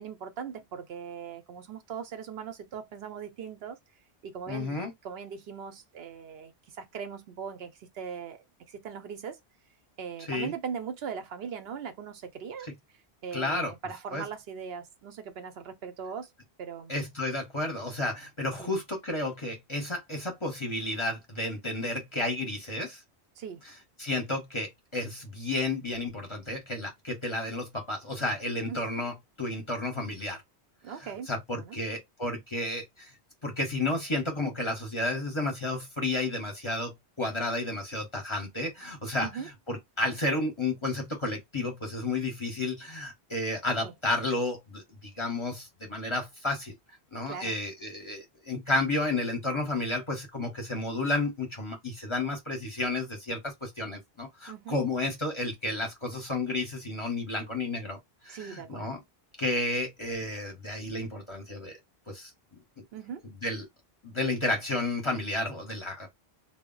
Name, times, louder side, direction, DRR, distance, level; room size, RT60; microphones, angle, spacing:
voice 1, 0.0-3.8 4.2-9.4 10.0-16.3 16.6-17.0 18.6-18.7 23.4-23.6 28.7-29.1 30.8-31.3 31.6-31.8 39.2-39.5 43.8-43.9 47.3-47.6 54.5-54.8 58.3-58.9 62.9-63.2, right 7 dB, 70° right, 0.8 m, -40 dB
voice 2, 4.5-4.9 10.3-10.5 13.3-13.7 14.1-14.2 16.9-23.0 24.0-30.4 31.3-33.1 33.4-39.4 39.7-46.7 47.1-58.0 58.2-59.0 59.4-61.8 62.1-62.8 63.4-63.7 64.0-66.1, left 2 dB, 30° left, 0.8 m, -32 dB
2.1 x 2.0 x 3.7 m
omnidirectional pair, 1.1 m